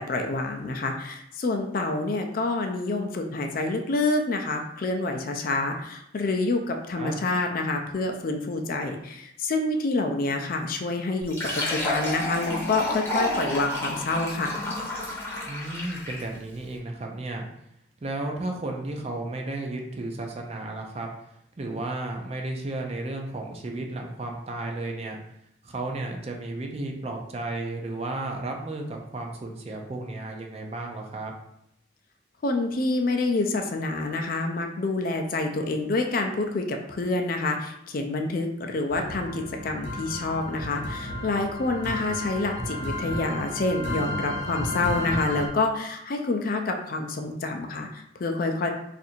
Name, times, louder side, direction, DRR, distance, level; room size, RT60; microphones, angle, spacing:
voice 1, 0.0-14.5 32.4-48.7, left 2 dB, 50° left, 4 dB, 0.4 m, -27 dB
Fill (with liquid), 11.2-16.4, left 1 dB, 15° left, 0.7 m, -30 dB
voice 2, 15.5-17.5 18.0-21.1 21.6-25.2 25.6-31.4, right 2 dB, 35° right, 2 dB, 0.4 m, -33 dB
sound 1, 38.9-45.5, left 1 dB, 75° left, 0.8 m, -33 dB
2.7 x 2.5 x 4.2 m, 0.77 s
head